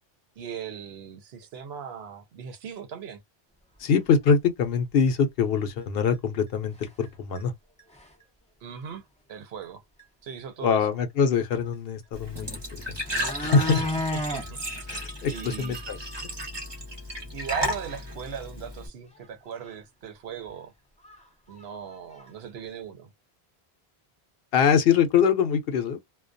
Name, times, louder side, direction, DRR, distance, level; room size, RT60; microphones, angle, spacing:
voice 1, 0.4-3.2 8.6-9.0 9.3-9.8 10.2-10.9 13.8-14.6 15.3-15.8 17.3-20.7 21.5-23.1, right 7 dB, 75° right, 0.9 m, -38 dB
voice 2, 3.8-7.5 10.6-13.0 13.4-13.9 14.9-16.0 16.2-16.3 24.5-26.0, left 6 dB, 70° left, 0.8 m, -24 dB
sound 1, 4.0-4.1 4.6-4.7 5.1-5.2 6.1-6.2 6.8-7.1 7.3-7.4 7.8-8.2 9.6-9.7 10.0-10.1 12.4-12.5 12.8-14.5 14.9-15.0 15.3-15.4 15.8-15.9 16.2-16.3 19.1-19.2 19.6-19.7 20.5-20.6 21.0-21.2 21.5-22.3 22.6-22.7, left 1 dB, 10° left, 0.5 m, -33 dB
Glass / Trickle dribble / Fill (with liquid), 12.1-18.9, equal, 30° right, 0.7 m, -34 dB
2.2 x 2.2 x 2.5 m
omnidirectional pair, 1.1 m